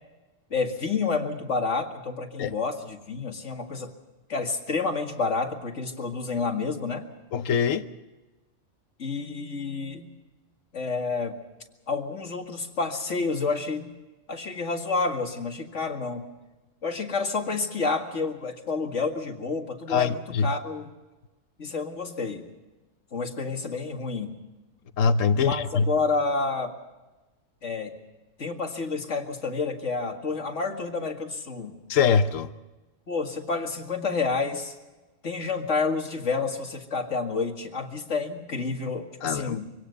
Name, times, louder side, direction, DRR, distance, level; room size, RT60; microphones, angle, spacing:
voice 1, 0.5-3.9 4.3-7.0 9.0-10.1 10.7-11.4 11.9-13.9 14.3-16.2 16.8-20.9 21.6-22.5 23.1-24.3 25.4-26.7 27.6-27.9 28.4-31.7 33.1-34.7 35.2-39.7, left 4 dB, 70° left, 2.3 m, -29 dB
voice 2, 7.3-7.8 19.9-20.5 25.0-25.9 31.9-32.5 39.2-39.6, left 6 dB, 85° left, 1.2 m, -23 dB
24.0 x 17.5 x 6.8 m
omnidirectional pair, 1.3 m